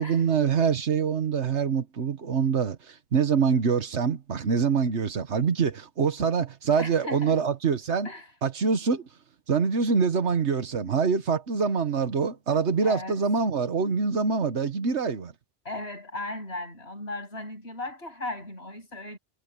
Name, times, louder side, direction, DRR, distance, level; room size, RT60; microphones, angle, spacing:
voice 1, 0.0-8.1 8.4-9.1 9.5-15.3, right 6 dB, 80° right, 1.6 m, -25 dB
voice 2, 6.8-7.4 8.0-8.3 12.8-13.2 15.6-19.2, left 2 dB, 65° left, 8.3 m, -36 dB
omnidirectional pair, 1.1 m